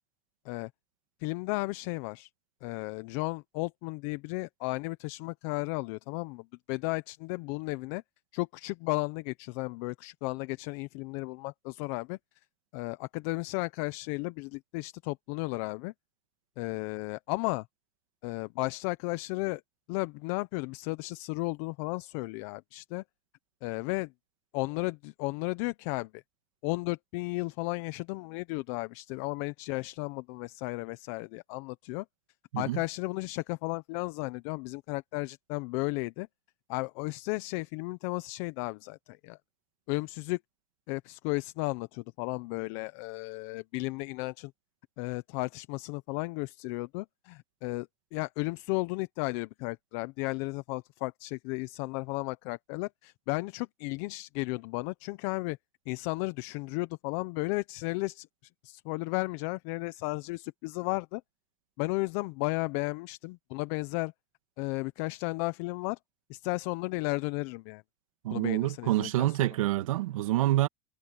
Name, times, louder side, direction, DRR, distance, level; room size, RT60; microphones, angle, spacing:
voice 1, 1.2-2.3 2.6-8.0 8.3-12.2 12.7-15.9 16.6-17.6 18.2-19.6 19.9-23.0 23.6-24.1 24.5-26.2 26.6-32.0 32.6-36.3 36.7-39.4 39.9-40.4 40.9-44.5 45.0-55.6 55.9-58.3 58.6-61.2 61.8-64.1 64.6-66.0 66.3-67.8 68.3-69.5, left 24 dB, 65° left, 0.9 m, -34 dB
voice 2, 68.2-70.7, right 15 dB, 90° right, 2.3 m, -27 dB
supercardioid pair, 125°, 17 cm